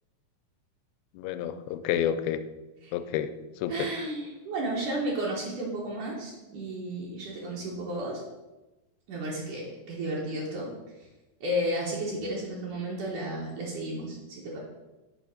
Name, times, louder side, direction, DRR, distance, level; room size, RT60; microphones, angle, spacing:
voice 1, 1.1-2.4 2.9-3.9, left 10 dB, 90° left, 10 dB, 2.5 m, -30 dB
voice 2, 3.7-8.2 9.1-10.7 11.0-11.1 11.4-14.6, right 1 dB, 65° right, -5 dB, 2.4 m, -33 dB
8.3 x 3.4 x 6.4 m, 1.1 s
omnidirectional pair, 4.3 m